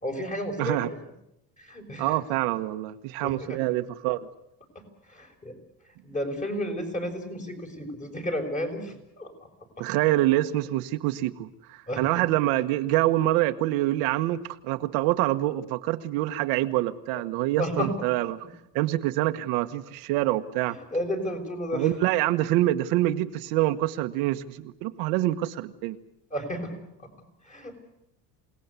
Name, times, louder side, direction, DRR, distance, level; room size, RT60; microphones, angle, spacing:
voice 1, 0.0-0.9 1.6-2.1 3.2-3.3 5.1-5.5 6.0-9.3 11.9-12.2 17.1-17.2 17.6-17.9 20.9-21.9 26.3-26.7 27.5-27.7, equal, 20° left, 3 dB, 5.6 m, -32 dB
voice 2, 0.6-0.9 2.0-4.2 9.8-18.4 18.7-20.8 21.7-26.0, right 15 dB, 75° right, 7 dB, 1.3 m, -26 dB
28.0 x 18.5 x 8.3 m, 0.84 s
cardioid pair, 145°, 36 cm